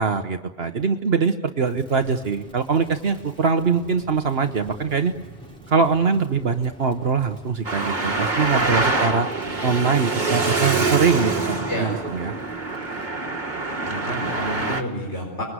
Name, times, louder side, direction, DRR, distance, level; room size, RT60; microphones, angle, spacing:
voice 1, 0.0-5.1 5.7-9.3 9.6-12.3, right 5 dB, 60° right, 7 dB, 1.4 m, -22 dB
Crackle, 1.6-13.2, right 1 dB, 5° left, 5.0 m, -46 dB
Traffic noise roadway noise, 7.6-14.8, right 3 dB, 40° right, 2.2 m, -25 dB
voice 2, 13.8-15.4, equal, 80° left, -1 dB, 5.1 m, -29 dB
28.5 x 21.5 x 9.6 m, 1.1 s
omnidirectional pair, 1.2 m